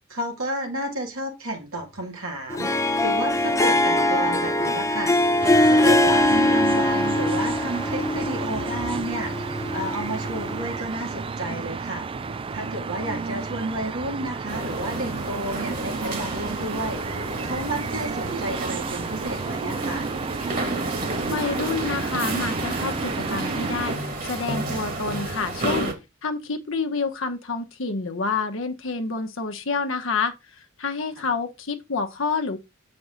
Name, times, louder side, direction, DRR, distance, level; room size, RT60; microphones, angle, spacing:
voice 1, 0.1-5.1 5.7-12.1 12.5-17.0 17.4-20.1 31.2-31.3, right 1 dB, 85° right, 2.3 m, -31 dB
Harp, 2.5-10.8, left 1 dB, 15° left, 0.7 m, -22 dB
sound 1, 5.4-24.0, right 4 dB, 25° right, 0.3 m, -32 dB
sound 2, 14.5-25.9, right 2 dB, 40° right, 2.1 m, -31 dB
voice 2, 21.3-23.9 24.2-25.9 26.2-32.6, left 4 dB, 65° left, 0.9 m, -28 dB
7.6 x 5.3 x 3.8 m
head